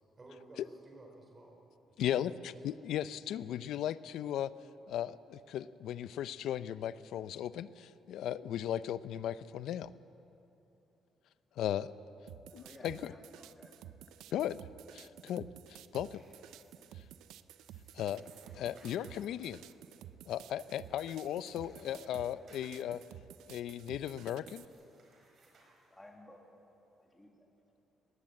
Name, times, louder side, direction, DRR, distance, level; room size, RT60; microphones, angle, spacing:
voice 1, 0.2-1.6 1.9-2.7 14.2-14.3, right 2 dB, 25° right, 1 dB, 3.7 m, -56 dB
voice 2, 2.0-4.5 4.9-9.9 11.6-11.9 12.5-13.1 14.3-14.6 14.9-16.2 17.9-18.2 18.6-19.6 20.3-23.0 23.5-24.6, left 11 dB, 75° left, 16 dB, 0.5 m, -37 dB
sound 1, 12.3-24.6, right 11 dB, 90° right, 0.6 m, -52 dB
voice 3, 12.5-13.8 25.9-26.5 26.9-27.5, left 1 dB, 10° left, 0 dB, 2.0 m, -56 dB
sound 2, 15.5-26.4, right 3 dB, 50° right, 5.1 m, -67 dB
19.5 x 18.0 x 7.7 m, 2.9 s
cardioid pair, 135°, 0 cm